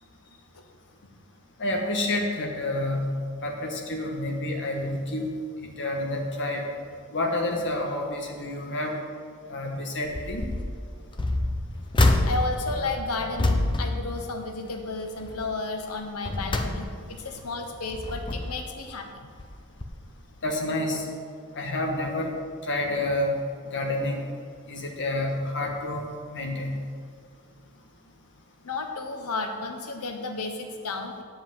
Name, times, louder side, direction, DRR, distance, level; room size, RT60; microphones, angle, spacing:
voice 1, 1.6-3.1 3.4-5.3 5.6-6.6 7.1-8.9 9.5-10.4 20.4-21.1 21.5-22.3 22.6-23.4 23.7-24.2 24.7-26.8, left 1 dB, 55° left, 1 dB, 1.7 m, -29 dB
sound 1, 10.1-10.7 11.1-14.8 15.2-15.5 16.0-17.3 17.8-18.7 19.4-19.6 19.8-19.9, left 2 dB, 20° left, 0.7 m, -27 dB
voice 2, 12.2-19.3 28.6-31.2, left 3 dB, 80° left, 4 dB, 1.1 m, -33 dB
9.9 x 5.4 x 7.6 m, 2.1 s
head